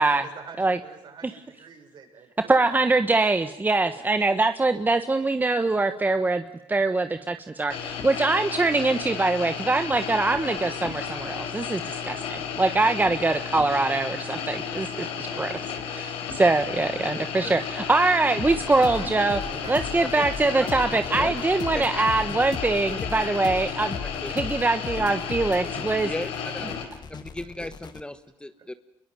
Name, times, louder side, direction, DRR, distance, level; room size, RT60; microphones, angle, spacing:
voice 1, 0.1-2.9 3.9-4.2 14.8-15.7 16.0-16.1 18.8-20.5, right 6 dB, 60° right, 3 dB, 7.7 m, -45 dB
voice 2, 2.5-6.4 6.7-14.9 15.4-15.5 16.0-16.1 16.3-19.4 19.7-24.0 24.3-26.1, right 3 dB, 20° right, 9 dB, 1.3 m, -23 dB
sound 1, 7.7-26.8, left 7 dB, 80° left, 4.6 m, -33 dB
voice 3, 16.9-17.6 20.1-20.2 20.5-20.7 21.2-21.3 21.7-22.0 23.3-23.4 24.0-24.4 26.0-26.8 27.1-28.7, left 1 dB, 10° left, 11 dB, 1.4 m, -36 dB
sound 2, 18.4-28.0, left 6 dB, 50° left, 2.0 m, -37 dB
28.0 x 22.5 x 9.1 m, 0.74 s
cardioid pair, 85°, 9 cm